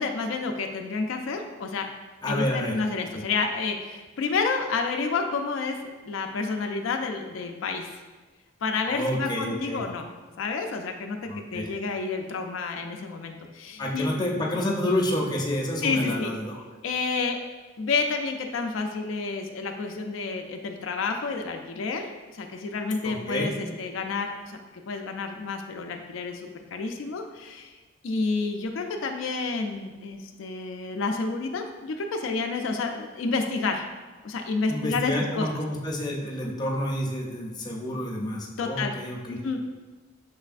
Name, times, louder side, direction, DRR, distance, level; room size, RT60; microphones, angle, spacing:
voice 1, 0.0-1.9 2.3-5.8 6.1-8.0 8.6-10.1 10.4-11.2 11.5-14.1 15.8-16.3 16.8-17.4 17.8-22.1 22.3-24.6 24.9-27.7 28.0-33.8 34.2-35.5 38.6-38.9 39.3-39.6, left 4 dB, 85° left, 4 dB, 0.4 m, -29 dB
voice 2, 2.2-2.7 3.1-3.2 8.9-9.8 11.3-11.7 13.8-16.6 23.0-23.5 34.7-39.4, left 1 dB, 20° left, -2 dB, 0.6 m, -29 dB
6.1 x 3.2 x 2.5 m, 1.3 s
head